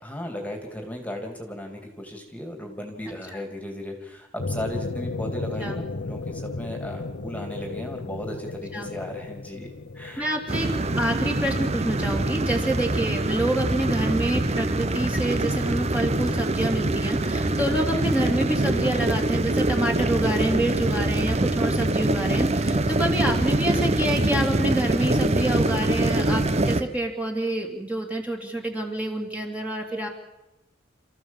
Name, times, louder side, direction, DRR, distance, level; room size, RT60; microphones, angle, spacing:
voice 1, 0.0-10.3 17.5-17.9, left 1 dB, 10° left, 3 dB, 2.8 m, -36 dB
sound 1, 4.4-11.3 11.6-11.7, left 3 dB, 65° left, 0.7 m, -34 dB
voice 2, 10.2-10.7 10.9-30.1, right 1 dB, 10° right, 0 dB, 2.8 m, -27 dB
sound 2, 10.5-26.8, right 2 dB, 35° right, 0.9 m, -24 dB
28.5 x 14.5 x 7.3 m, 0.97 s
head